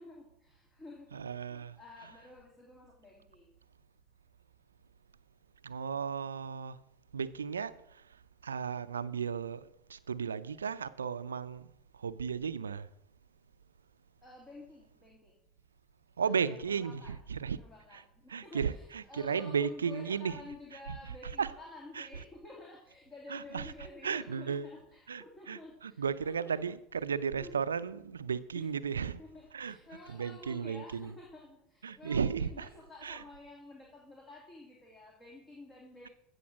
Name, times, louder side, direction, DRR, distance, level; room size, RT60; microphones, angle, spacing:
voice 1, 0.0-1.2 1.7-3.6 14.2-15.4 16.2-17.2 17.6-26.6 27.0-27.5 28.5-28.7 29.2-36.1, left 2 dB, 25° left, 2.9 m, -51 dB
voice 2, 1.1-1.8 5.6-6.8 7.1-12.9 16.2-17.6 17.9-18.0 18.3-20.4 21.4-21.5 22.0-22.1 23.3-23.7 24.0-24.7 25.1-29.2 29.5-29.8 30.1-31.1 31.8-32.7 33.0-33.2, right 6 dB, 85° right, 0.5 m, -35 dB
15.5 x 7.0 x 6.2 m
figure-of-eight pair, 75°, 0 cm